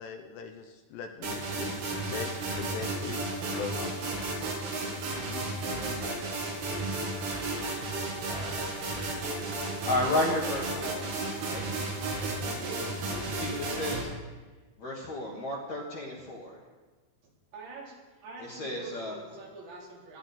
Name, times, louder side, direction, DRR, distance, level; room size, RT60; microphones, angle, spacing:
voice 1, 0.0-3.9 13.1-13.7, left 6 dB, 75° left, 6 dB, 2.7 m, -40 dB
sound 1, 1.2-14.0, right 2 dB, 90° right, 5.6 m, -33 dB
voice 2, 8.3-9.1 9.6-11.1 11.4-11.7 13.3-14.1 14.8-16.6 18.4-19.2, left 1 dB, 55° left, -3 dB, 2.1 m, -33 dB
voice 3, 12.2-13.0 17.5-18.0 18.2-20.2, right 2 dB, 75° right, -4 dB, 5.7 m, -45 dB
19.5 x 12.5 x 4.2 m, 1.3 s
omnidirectional pair, 5.4 m